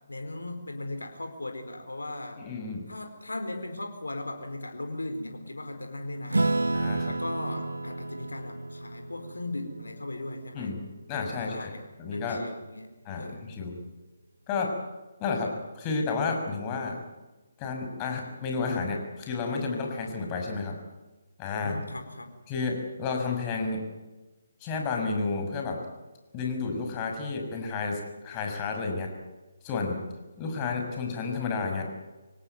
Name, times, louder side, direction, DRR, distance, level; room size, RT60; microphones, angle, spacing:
voice 1, 0.1-2.4 2.9-6.5 7.1-10.8 11.3-11.8 12.1-12.9 13.2-13.4 21.6-22.3, left 2 dB, 80° left, 5 dB, 4.3 m, -38 dB
voice 2, 2.4-2.8 6.7-7.1 10.5-10.7 11.1-11.7 12.0-12.4 13.0-13.7 14.5-14.7 15.2-17.0 17.6-20.8 21.4-21.8 22.5-23.8 24.6-25.8 26.3-29.1 29.6-30.0 30.4-31.9, left 4 dB, 25° left, 2 dB, 6.2 m, -31 dB
Acoustic guitar / Strum, 6.3-11.2, right 2 dB, 85° right, 1.4 m, -31 dB
25.5 x 18.0 x 9.4 m, 1.2 s
figure-of-eight pair, 145°, 0 cm